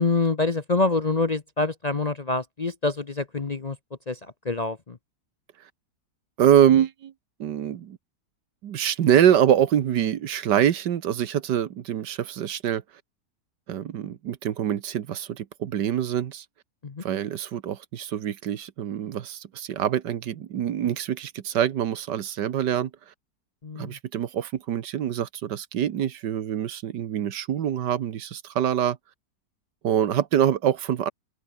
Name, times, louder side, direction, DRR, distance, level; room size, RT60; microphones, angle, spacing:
voice 1, 0.0-3.8 4.1-5.0 16.8-17.0 23.6-24.0, left 3 dB, 35° left, 0.7 m, -26 dB
voice 2, 6.4-7.1 7.4-8.0 8.6-12.8 13.7-16.4 17.0-22.9 23.8-29.0 29.8-31.1, right 10 dB, 85° right, 1.7 m, -24 dB
omnidirectional pair, 1.8 m